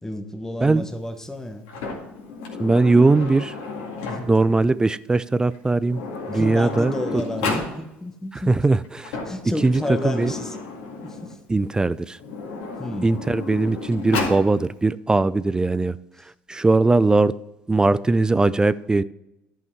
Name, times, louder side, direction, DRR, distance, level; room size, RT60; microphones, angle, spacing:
voice 1, 0.0-1.7 4.0-4.3 6.3-8.5 9.2-10.6 11.0-11.4 12.8-13.1, left 1 dB, 10° left, 7 dB, 1.1 m, -31 dB
Sliding door, 1.7-4.5 5.5-5.6 5.9-7.7 8.8-11.4 12.1-14.4, left 4 dB, 80° left, 2.1 m, -32 dB
voice 2, 2.6-3.6 4.3-6.0 6.3-7.5 8.3-9.2 9.6-10.3 11.5-12.2 13.0-16.0 16.2-17.3 17.7-19.0, right 3 dB, 15° right, 17 dB, 0.3 m, -20 dB
10.5 x 5.6 x 4.6 m, 0.91 s
hypercardioid pair, 75°, 5 cm